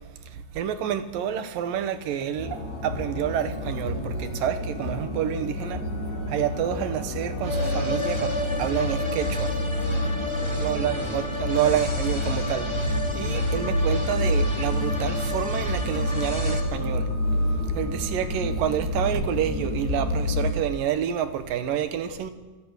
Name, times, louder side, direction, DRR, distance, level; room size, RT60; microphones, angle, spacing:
voice 1, 0.3-5.9 6.3-9.6 10.6-17.1 17.7-22.3, right 9 dB, 65° right, 2.7 m, -28 dB
sound 1, 2.4-20.5, left 1 dB, 65° left, 9.0 m, -28 dB
sound 2, 7.4-16.6, left 1 dB, 10° left, 2.2 m, -32 dB
28.5 x 21.5 x 6.5 m
omnidirectional pair, 4.7 m